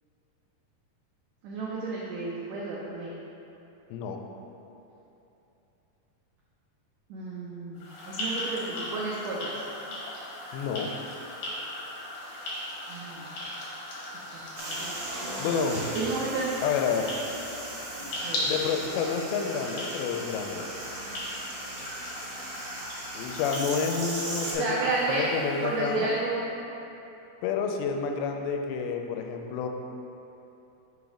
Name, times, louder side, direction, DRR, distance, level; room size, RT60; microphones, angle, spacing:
voice 1, 1.4-3.1 7.1-9.5 12.9-13.3 14.3-15.0 15.2-15.5 15.9-16.5 18.2-18.4 24.6-25.3 25.6-26.4, right 3 dB, 85° right, -5 dB, 1.8 m, -31 dB
voice 2, 3.9-4.2 10.5-10.9 15.4-15.8 16.6-17.1 18.4-20.7 23.1-24.7 25.1-26.2 27.4-29.7, left 6 dB, 85° left, 4 dB, 2.5 m, -29 dB
sound 1, 7.7-26.2, left 1 dB, 60° left, 2.0 m, -38 dB
sound 2, 14.6-24.5, right 1 dB, 65° right, 1.8 m, -38 dB
5.5 x 4.0 x 4.8 m, 3.0 s
omnidirectional pair, 4.3 m